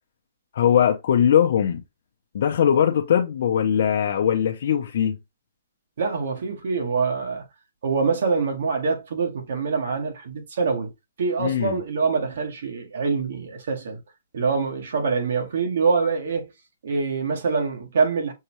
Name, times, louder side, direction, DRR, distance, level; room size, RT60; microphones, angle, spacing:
voice 1, 0.5-1.8 2.3-5.2 11.4-11.8, left 9 dB, 60° left, 0.6 m, -20 dB
voice 2, 6.0-7.4 7.8-10.9 11.2-14.0 14.3-16.5 16.8-18.3, right 4 dB, 70° right, 1.6 m, -25 dB
6.3 x 2.3 x 3.0 m
hypercardioid pair, 150°, 0 cm